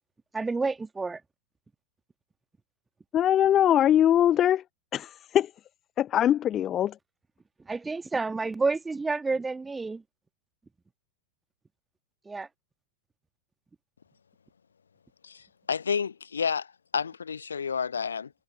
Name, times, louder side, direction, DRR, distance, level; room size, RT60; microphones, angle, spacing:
voice 1, 0.3-1.2 7.6-10.0 12.2-12.5, right 3 dB, 10° right, 1.8 m, -29 dB
voice 2, 3.1-4.6 4.9-5.5 6.0-6.9, left 11 dB, 30° left, 0.5 m, -22 dB
voice 3, 15.2-18.3, left 6 dB, 70° left, 0.8 m, -30 dB
figure-of-eight pair, 90°, 0 cm